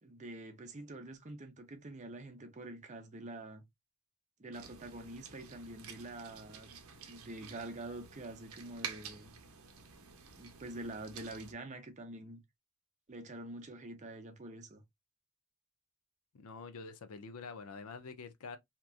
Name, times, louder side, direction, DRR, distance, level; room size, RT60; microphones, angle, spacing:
voice 1, 0.0-3.6 4.4-9.3 10.3-12.4 13.1-14.8, right 2 dB, 30° right, 0.6 m, -46 dB
sound 1, 4.5-11.5, right 7 dB, 75° right, 0.7 m, -50 dB
voice 2, 16.3-18.6, left 4 dB, 75° left, 0.5 m, -46 dB
2.9 x 2.3 x 2.3 m
head